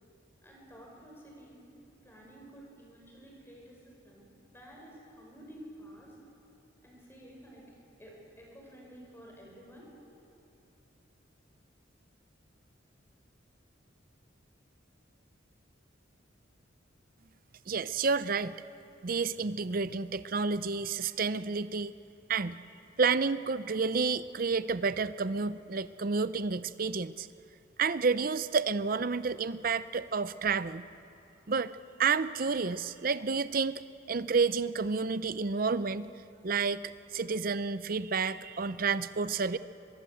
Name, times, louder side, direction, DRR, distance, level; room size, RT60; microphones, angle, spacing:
voice 1, 0.4-1.6 2.0-6.1 6.8-7.6 8.0-9.9, equal, 10° left, -2 dB, 5.9 m, -51 dB
voice 2, 17.7-18.6 19.0-21.9 22.3-22.6 23.0-27.3 27.8-30.8 31.5-31.7 32.0-33.8 34.1-36.1 36.4-39.6, right 4 dB, 45° right, 14 dB, 0.6 m, -30 dB
23.5 x 22.0 x 7.8 m, 2.8 s
head